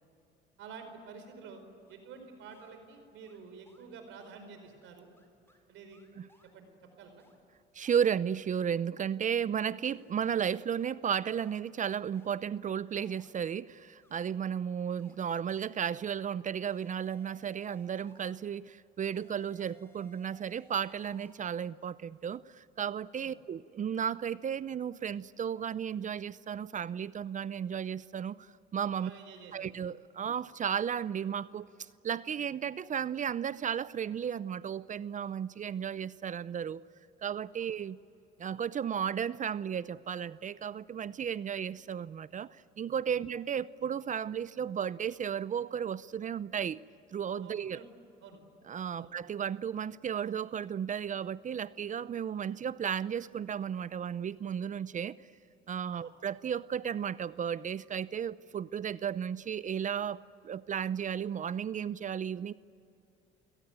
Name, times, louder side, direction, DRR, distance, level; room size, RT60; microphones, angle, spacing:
voice 1, 0.6-1.6 1.9-5.1 5.7-6.0 6.5-6.7 7.0-7.1 23.2-23.3 29.0-29.7 47.4-47.9 48.2-48.4 48.9-49.1 55.9-56.1, right 5 dB, 75° right, 4.8 m, -49 dB
sound 1, 1.9-2.0 2.5-2.8 3.3-3.4 3.7-3.9 4.2-4.4 4.8-4.9 5.2-5.6 5.9-6.5 7.2-7.4 7.8-8.0 8.4-8.5 9.0-9.1 9.4-9.5 9.9-10.2 10.8-10.9 11.4-11.6 12.1-12.4 12.9-13.3 14.0-14.3 15.0-15.2 15.9-16.2 16.6-18.4 19.1-21.4, left 1 dB, 10° left, 4.4 m, -64 dB
voice 2, 7.7-29.1 29.5-31.7 32.0-36.8 37.2-38.0 38.4-42.5 42.8-46.8 47.1-47.8 48.6-55.2 55.7-60.2 60.4-62.5, right 8 dB, 40° right, 0.6 m, -34 dB
29.5 x 17.5 x 9.1 m
supercardioid pair, 85°, 20 cm